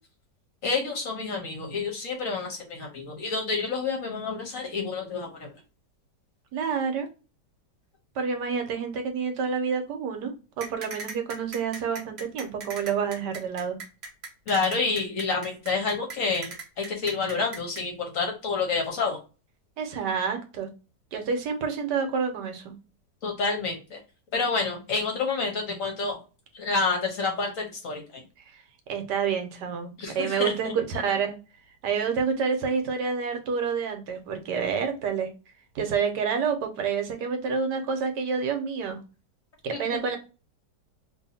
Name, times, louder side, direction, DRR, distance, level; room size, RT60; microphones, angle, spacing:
voice 1, 0.6-5.5 14.5-19.2 23.2-24.0 24.3-26.2 26.5-28.0 30.0-30.7, left 4 dB, 55° left, 2 dB, 1.0 m, -28 dB
voice 2, 6.5-7.1 8.2-13.8 19.8-20.7 21.1-22.8 28.9-31.4 31.8-35.3 35.7-39.0 39.6-40.2, right 6 dB, 75° right, 5 dB, 1.3 m, -28 dB
sound 1, 10.6-17.8, right 3 dB, 50° right, 0.9 m, -39 dB
2.8 x 2.6 x 4.0 m, 0.32 s
omnidirectional pair, 1.9 m